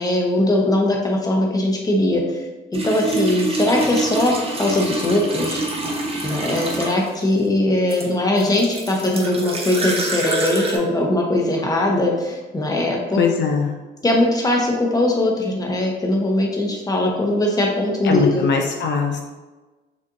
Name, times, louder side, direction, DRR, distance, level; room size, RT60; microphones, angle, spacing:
voice 1, 0.0-5.6 6.2-13.2 14.0-18.5, left 1 dB, 20° left, 0 dB, 0.9 m, -20 dB
sound 1, 2.7-7.2 7.9-10.8, right 2 dB, 30° right, 0.9 m, -26 dB
voice 2, 13.2-13.7 18.0-19.2, left 5 dB, 65° left, 2 dB, 0.5 m, -20 dB
6.7 x 2.5 x 2.6 m, 1.2 s
cardioid pair, 90°, 20 cm